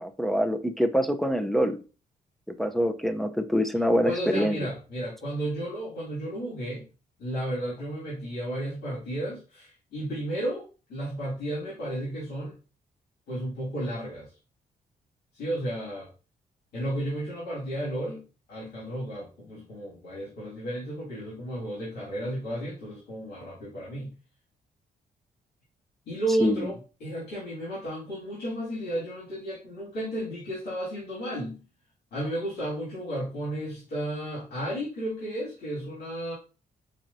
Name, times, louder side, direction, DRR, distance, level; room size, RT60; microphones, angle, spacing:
voice 1, 0.0-1.8 2.6-4.6 26.4-26.7, equal, ahead, 6 dB, 0.5 m, -25 dB
voice 2, 4.0-6.9 7.2-12.5 13.3-14.3 15.3-16.1 16.7-18.2 18.5-24.1 26.1-31.6 32.1-36.3, right 1 dB, 85° left, -7 dB, 2.1 m, -33 dB
4.8 x 3.0 x 2.6 m, 0.34 s
cardioid pair, 85°, 16 cm